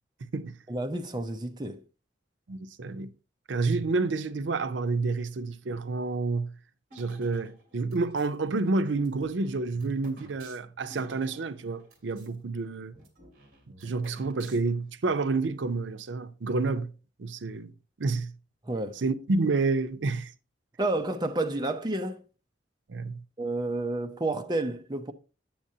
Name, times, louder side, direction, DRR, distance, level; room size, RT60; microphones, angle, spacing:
voice 1, 0.7-1.8 18.6-19.0 20.8-22.2 23.4-25.1, right 2 dB, 25° right, 0.5 m, -30 dB
voice 2, 2.5-3.1 3.5-6.5 6.9-12.9 13.8-16.9 17.2-17.7 18.0-18.3 19.0-20.3 22.9-23.2, right 3 dB, 85° right, 0.6 m, -29 dB
sound 1, 6.9-8.4 8.9-12.4 12.6-12.7 12.9-14.9, right 1 dB, 50° right, 1.9 m, -53 dB
8.7 x 7.3 x 2.7 m
head